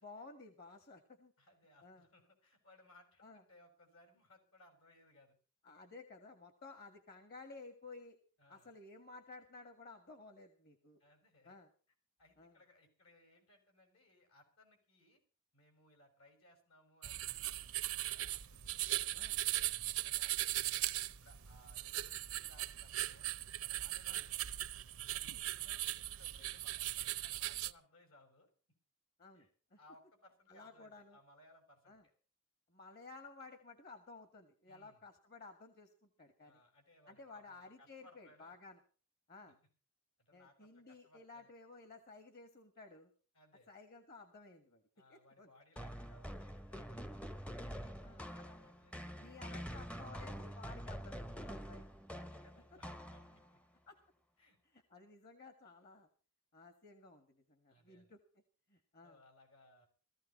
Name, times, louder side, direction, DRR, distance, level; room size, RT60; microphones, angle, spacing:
voice 1, 0.0-1.3 1.8-2.1 3.2-3.4 5.6-8.2 8.5-11.0 11.5-11.7 12.4-12.6 19.1-19.4 24.1-24.2 29.2-29.8 30.5-31.2 31.9-32.0 32.7-36.6 37.1-38.8 39.3-39.6 40.3-43.1 43.7-44.8 45.1-45.5 48.0-48.3 49.2-51.8 53.9-54.0 54.7-56.1 56.5-58.2 58.7-59.2, left 3 dB, 45° left, 7 dB, 1.8 m, -55 dB
voice 2, 1.4-5.4 8.4-8.8 11.0-11.6 12.2-15.2 15.5-19.2 19.6-23.3 23.6-24.7 25.1-28.5 29.3-29.5 29.8-32.0 34.6-35.0 36.4-38.6 40.2-41.5 43.3-43.7 45.0-50.0 52.2-53.6 54.4-54.6 57.7-58.1 59.0-59.9, left 1 dB, 75° left, 4 dB, 6.3 m, -66 dB
sound 1, 17.0-27.7, right 15 dB, 85° right, 0.7 m, -39 dB
sound 2, 45.8-53.6, equal, 5° left, 0.6 m, -46 dB
17.0 x 15.0 x 4.3 m, 0.38 s
head